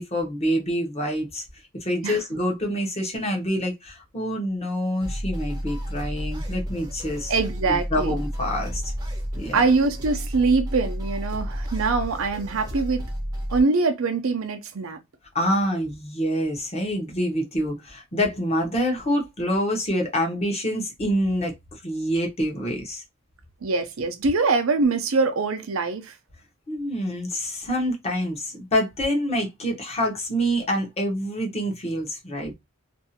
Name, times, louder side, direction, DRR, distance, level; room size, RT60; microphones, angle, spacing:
voice 1, 0.0-1.4 1.8-7.3 7.6-8.9 9.3-9.7 15.3-23.0 26.7-32.5, equal, 30° left, 0.8 m, -26 dB
sound 1, 5.0-13.6, equal, 15° right, 0.6 m, -31 dB
voice 2, 7.3-8.1 9.5-13.1 13.5-15.0 23.6-26.1, right 3 dB, 70° right, 0.5 m, -23 dB
2.6 x 2.3 x 2.7 m
head